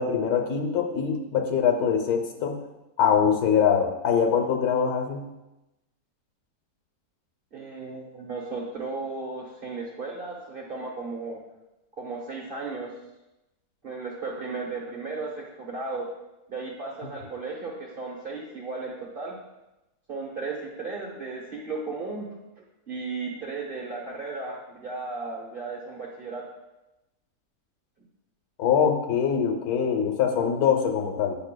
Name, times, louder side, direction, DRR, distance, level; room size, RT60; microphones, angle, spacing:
voice 1, 0.0-2.6 3.0-5.3 28.6-31.4, left 7 dB, 70° left, 4 dB, 1.2 m, -23 dB
voice 2, 7.5-11.4 12.0-12.9 13.8-16.1 16.5-19.4 20.1-22.4 22.9-26.4, right 3 dB, 45° right, -2 dB, 0.8 m, -35 dB
8.7 x 5.6 x 2.2 m, 0.97 s
omnidirectional pair, 1.7 m